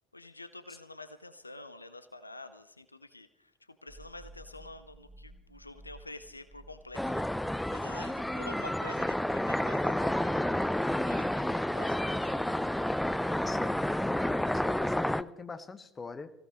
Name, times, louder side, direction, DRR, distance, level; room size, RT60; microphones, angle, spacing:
voice 1, 0.1-7.2 7.7-12.5 13.2-13.4, left 2 dB, 90° left, 13 dB, 0.6 m, -48 dB
sound 1, 3.9-12.3, right 1 dB, 25° right, 4.9 m, -56 dB
sound 2, 6.9-15.2, left 1 dB, 5° left, 0.5 m, -30 dB
voice 2, 13.4-13.8 14.2-16.3, left 4 dB, 25° left, 11 dB, 1.2 m, -42 dB
24.5 x 16.0 x 3.1 m, 0.88 s
figure-of-eight pair, 65°, 0 cm